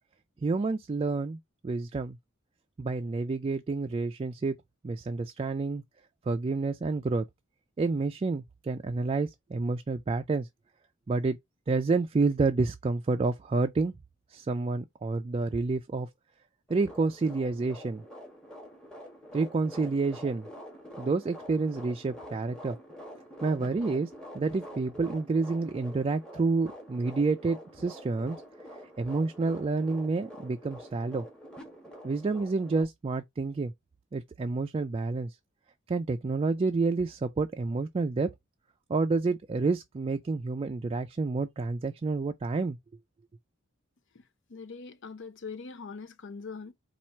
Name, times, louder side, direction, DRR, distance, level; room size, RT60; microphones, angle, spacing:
voice 1, 0.4-2.2 2.8-4.6 4.8-5.8 6.3-7.2 7.8-10.5 11.1-11.4 11.7-13.9 14.3-16.1 16.7-18.0 19.3-20.5 21.0-22.8 23.4-24.1 24.3-28.4 29.0-31.3 32.0-33.7 34.1-35.4 35.9-38.3 38.9-42.8, right 3 dB, 30° right, 0.3 m, -29 dB
sound 1, 16.7-32.8, equal, 5° left, 1.2 m, -46 dB
voice 2, 44.5-46.7, left 5 dB, 65° left, 0.6 m, -42 dB
4.3 x 2.4 x 4.3 m
head